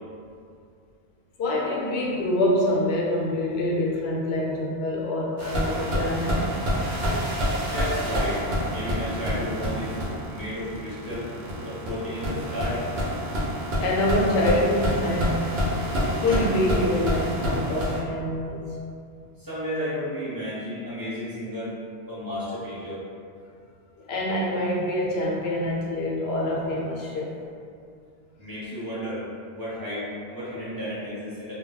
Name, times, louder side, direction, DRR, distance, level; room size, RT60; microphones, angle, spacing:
voice 1, 1.4-6.4 13.8-15.4 16.2-18.7 24.0-27.4, left 1 dB, 80° left, -3 dB, 0.8 m, -25 dB
sound 1, 5.4-18.0, equal, 75° right, 0.9 m, -27 dB
voice 2, 7.7-10.0 10.3-11.3 11.6-12.8 19.4-21.7 22.1-23.0 28.4-29.2 29.5-31.5, equal, 20° right, -11 dB, 0.9 m, -33 dB
2.2 x 2.1 x 3.8 m, 2.4 s
omnidirectional pair, 1.1 m